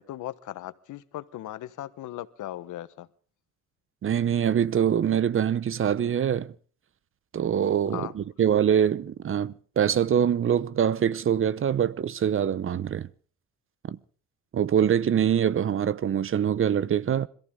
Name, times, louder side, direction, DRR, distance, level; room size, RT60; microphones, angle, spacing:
voice 1, 0.0-3.1 7.9-8.1, left 13 dB, 80° left, 1.1 m, -38 dB
voice 2, 4.0-6.5 7.3-13.1 13.9-14.0 14.5-17.3, right 9 dB, 45° right, 0.8 m, -24 dB
26.5 x 14.5 x 3.7 m
cardioid pair, 90°, 30 cm